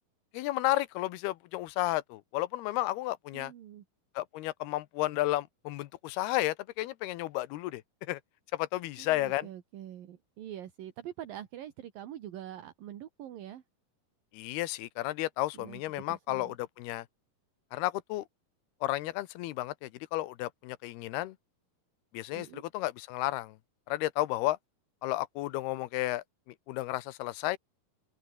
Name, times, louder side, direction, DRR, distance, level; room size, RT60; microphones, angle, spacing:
voice 1, 0.3-3.5 4.2-7.8 8.1-8.2 8.5-9.5 14.3-17.1 17.7-18.2 18.8-21.4 22.1-23.6 23.9-24.6 25.0-26.2 26.7-27.6, left 17 dB, 85° left, 2.9 m, -32 dB
voice 2, 3.3-3.8 9.0-13.6 15.5-15.8 16.1-16.6 22.3-22.6, right 11 dB, 70° right, 3.3 m, -44 dB
omnidirectional pair, 4.4 m